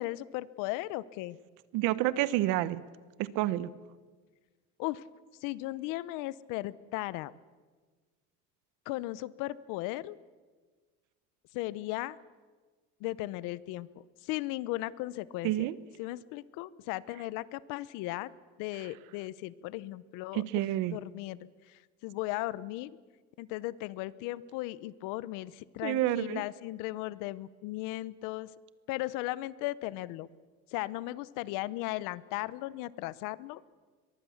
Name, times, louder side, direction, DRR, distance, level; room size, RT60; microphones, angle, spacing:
voice 1, 0.0-1.4 4.8-5.0 5.4-7.3 8.9-10.2 11.5-12.2 13.0-15.7 16.0-18.3 18.6-20.4 20.9-21.4 21.7-22.9 23.4-28.5 28.9-30.3 30.7-33.6, left 17 dB, 80° left, 19 dB, 0.9 m, -36 dB
voice 2, 1.7-2.8 3.2-3.7 15.4-15.8 20.3-21.0 25.8-26.4, right 15 dB, 75° right, 17 dB, 1.0 m, -29 dB
23.0 x 22.5 x 7.2 m, 1.4 s
cardioid pair, 170°, 31 cm